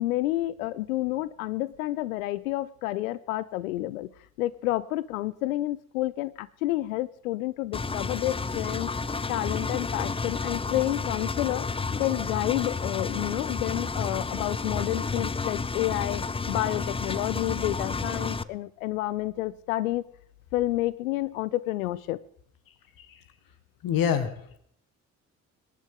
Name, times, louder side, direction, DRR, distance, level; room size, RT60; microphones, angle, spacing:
voice 1, 0.0-4.1 4.4-8.9 9.3-11.7 12.0-20.0 20.5-22.2, left 16 dB, 75° left, 20 dB, 0.6 m, -29 dB
Engine, 7.7-18.4, left 4 dB, 15° left, 0.7 m, -31 dB
voice 2, 23.8-24.6, left 8 dB, 55° left, 12 dB, 1.6 m, -26 dB
26.0 x 11.5 x 3.7 m, 0.65 s
figure-of-eight pair, 45°, 41 cm